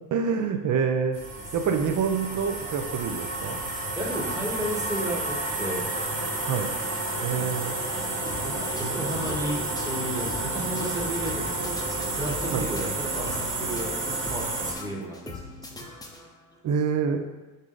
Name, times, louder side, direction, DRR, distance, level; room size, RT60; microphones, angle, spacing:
voice 1, 0.1-1.2 1.5-3.6 6.4-6.7 7.2-7.7 12.5-12.7 16.6-17.2, right 6 dB, 45° right, 6 dB, 0.6 m, -26 dB
sound 1, 1.1-14.7, right 2 dB, 30° right, 1.1 m, -31 dB
voice 2, 4.0-5.9 8.4-15.8, right 1 dB, 10° right, -2 dB, 1.2 m, -33 dB
sound 2, 8.3-16.6, left 3 dB, 10° left, 0.7 m, -42 dB
5.0 x 2.7 x 3.8 m, 1.2 s
hypercardioid pair, 65°, 44 cm